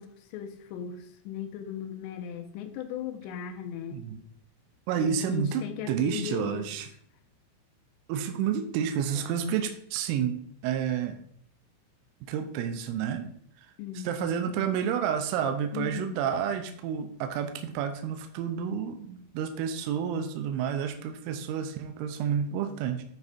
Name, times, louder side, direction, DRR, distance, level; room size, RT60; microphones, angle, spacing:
voice 1, 0.0-4.0 5.0-6.7 9.1-9.3 13.8-14.2 15.7-16.2, left 9 dB, 80° left, 6 dB, 2.6 m, -37 dB
voice 2, 4.9-6.9 8.1-11.2 12.2-13.3 13.6-13.7 14.0-23.0, right 8 dB, 85° right, 6 dB, 3.1 m, -30 dB
9.0 x 4.7 x 4.1 m, 0.64 s
omnidirectional pair, 5.8 m